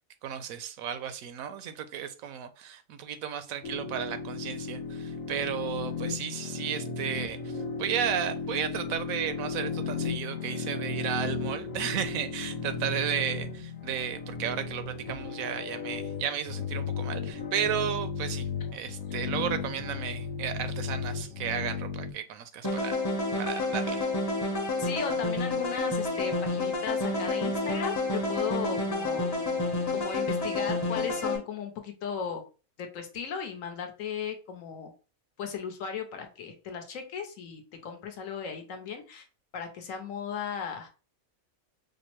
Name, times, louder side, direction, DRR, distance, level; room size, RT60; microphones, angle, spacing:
voice 1, 0.2-23.0 23.4-24.1, right 9 dB, 80° right, 1.0 m, -34 dB
sound 1, 3.6-22.1, left 5 dB, 55° left, 0.8 m, -35 dB
sound 2, 22.6-31.4, left 2 dB, 15° left, 0.7 m, -29 dB
voice 2, 24.8-29.3 29.9-32.4 32.8-34.9 35.4-39.2 39.5-40.9, left 7 dB, 70° left, 1.1 m, -36 dB
5.0 x 2.0 x 3.0 m
omnidirectional pair, 1.5 m